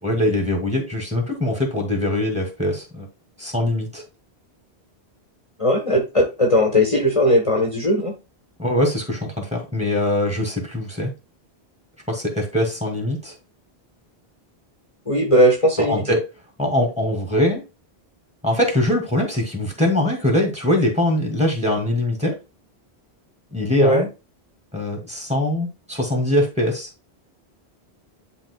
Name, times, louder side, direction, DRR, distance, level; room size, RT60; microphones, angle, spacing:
voice 1, 0.0-3.1 3.4-4.0 8.6-11.1 12.1-13.3 15.9-16.2 16.6-17.6 18.4-22.3 23.5-24.1 24.7-26.9, left 1 dB, 5° right, 1 dB, 2.4 m, -22 dB
voice 2, 5.6-8.1 15.1-16.2 23.8-24.1, equal, 30° left, 1 dB, 1.4 m, -18 dB
11.0 x 3.8 x 2.3 m, 0.28 s
omnidirectional pair, 1.1 m